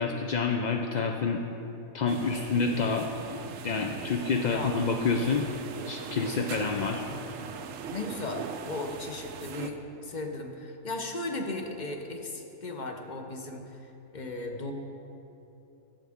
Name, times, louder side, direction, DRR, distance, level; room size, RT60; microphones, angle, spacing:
voice 1, 0.0-1.4 1.9-3.4 3.6-5.5 5.9-7.0, left 4 dB, 65° left, 3 dB, 0.4 m, -28 dB
sound 1, 2.1-9.7, right 6 dB, 85° right, 1.0 m, -40 dB
voice 2, 7.9-14.7, left 2 dB, 40° left, 3 dB, 0.9 m, -36 dB
16.5 x 7.5 x 3.5 m, 2.9 s
omnidirectional pair, 1.3 m